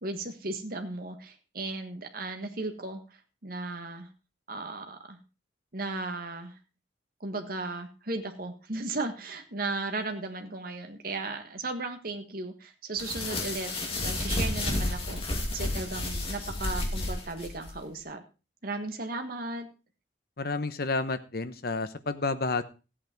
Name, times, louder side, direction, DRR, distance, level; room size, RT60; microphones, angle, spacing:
voice 1, 0.0-3.0 3.4-4.1 4.5-5.2 5.7-6.5 7.2-15.2 15.5-18.2 18.6-19.7, right 2 dB, 50° right, 5 dB, 1.6 m, -35 dB
sound 1, 13.0-17.7, left 2 dB, 30° left, 2.7 m, -31 dB
voice 2, 20.4-22.6, left 3 dB, 55° left, 11 dB, 1.0 m, -30 dB
14.5 x 8.7 x 4.5 m, 0.32 s
head